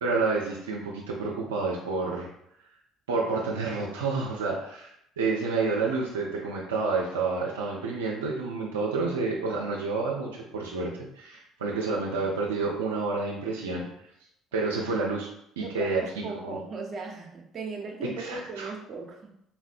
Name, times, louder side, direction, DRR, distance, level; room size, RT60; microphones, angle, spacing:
voice 1, 0.0-2.3 3.1-10.9 11.2-13.9 14.5-15.3 15.6-16.6 18.2-18.7, right 4 dB, 85° right, -2 dB, 0.4 m, -29 dB
voice 2, 15.6-19.3, right 4 dB, 45° right, 1 dB, 0.6 m, -38 dB
4.2 x 2.0 x 2.5 m, 0.75 s
hypercardioid pair, 55°, 0 cm